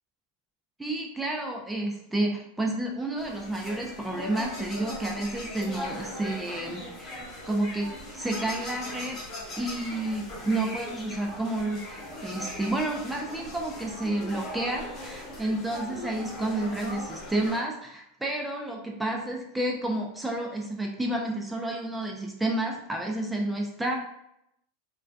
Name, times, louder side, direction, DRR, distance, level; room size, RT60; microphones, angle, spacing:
voice 1, 0.8-7.1 7.5-9.2 9.6-24.0, right 1 dB, 5° right, 0 dB, 0.3 m, -30 dB
sound 1, 3.2-17.6, left 1 dB, 30° left, 0.9 m, -39 dB
2.5 x 2.2 x 2.2 m, 0.78 s
supercardioid pair, 125°, 0 cm